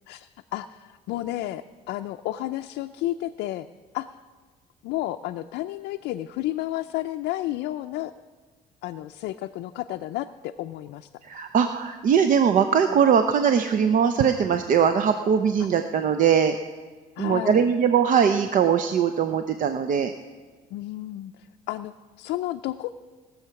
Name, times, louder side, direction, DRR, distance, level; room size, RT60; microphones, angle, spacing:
voice 1, 0.1-3.7 3.9-4.1 4.8-8.1 8.8-11.1 17.2-17.7 20.7-22.9, left 15 dB, 85° left, 6 dB, 0.4 m, -32 dB
voice 2, 11.2-16.6 17.2-20.1, right 7 dB, 50° right, 8 dB, 0.6 m, -21 dB
19.0 x 7.1 x 5.8 m, 1.4 s
cardioid pair, 110°, 17 cm